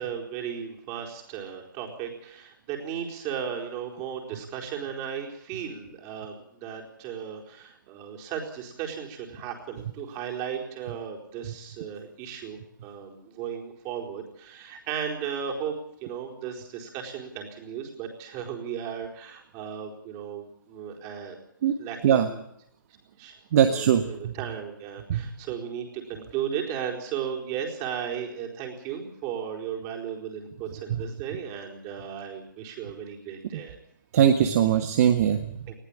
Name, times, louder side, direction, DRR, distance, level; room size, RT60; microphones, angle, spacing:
voice 1, 0.0-15.7 16.0-21.4 21.8-22.4 23.2-33.8 35.7-35.8, right 8 dB, 30° right, 1 dB, 4.4 m, -35 dB
voice 2, 23.5-24.3 25.1-25.3 30.9-31.0 33.5-33.6 34.1-35.7, right 9 dB, 45° right, 7 dB, 1.6 m, -21 dB
20.5 x 15.5 x 8.8 m, 0.73 s
hypercardioid pair, 140°, 11 cm